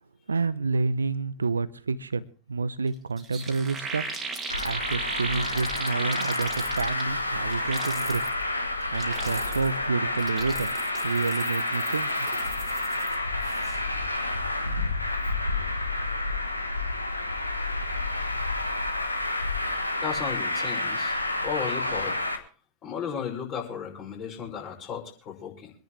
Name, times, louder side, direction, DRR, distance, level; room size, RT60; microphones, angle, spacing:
voice 1, 0.3-4.1 4.6-8.2 8.9-10.7 11.0-12.4, right 4 dB, 75° right, 18 dB, 0.8 m, -29 dB
sound 1, 2.9-3.0 3.2-7.2 7.5-8.3 8.8-9.8 10.1-13.1 13.4-13.8, right 4 dB, 20° right, 2.5 m, -37 dB
Traffic noise roadway noise, 4.5-22.4, left 2 dB, 85° left, 1.5 m, -29 dB
voice 2, 20.0-21.2 21.4-22.2 22.8-25.7, left 7 dB, 35° left, -1 dB, 5.9 m, -34 dB
25.5 x 10.5 x 3.5 m, 0.39 s
figure-of-eight pair, 90°, 0 cm